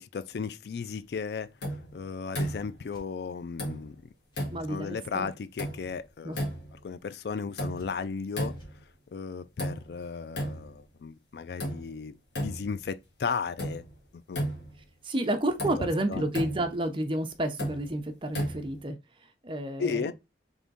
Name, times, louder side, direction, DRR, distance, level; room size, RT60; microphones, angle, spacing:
voice 1, 0.0-1.5 1.9-4.0 4.7-6.4 6.8-8.6 9.1-12.2 12.4-13.8 14.1-14.5 15.8-16.3 19.8-20.1, left 5 dB, 65° left, 0.4 m, -35 dB
sound 1, 1.6-2.0 2.4-2.9 3.6-4.0 4.3-4.8 5.6-6.0 6.4-6.8 7.6-8.0 8.4-8.9 9.6-10.0 10.4-10.8 11.6-12.0 12.4-12.9 13.6-14.0 14.3-14.9 15.6-15.9 16.3-16.8 17.6-17.9 18.3-18.9, equal, 85° left, 1.7 m, -34 dB
sound 2, 2.9-3.1 4.3-4.5 6.3-6.5 7.7-8.2 8.5-8.7, equal, 25° left, 1.3 m, -53 dB
voice 2, 4.5-5.3 6.2-6.4 15.0-19.0 19.4-20.1, right 1 dB, 30° right, 0.7 m, -30 dB
3.6 x 3.4 x 3.9 m
head